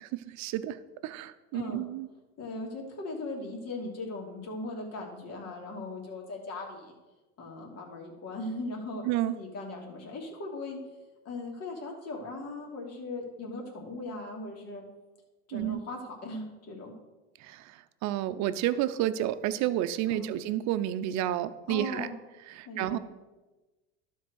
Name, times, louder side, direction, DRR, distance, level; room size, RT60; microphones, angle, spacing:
voice 1, 0.4-0.8 1.0-2.1 9.0-9.4 15.5-15.8 17.4-22.1 22.5-23.0, right 13 dB, 50° right, 12 dB, 0.7 m, -30 dB
voice 2, 2.4-6.9 7.4-10.8 11.2-14.8 15.5-16.9 20.1-20.3 21.7-22.1 22.6-23.0, left 2 dB, 45° left, 0 dB, 2.7 m, -39 dB
12.0 x 4.7 x 6.4 m, 1.1 s
supercardioid pair, 105°, 36 cm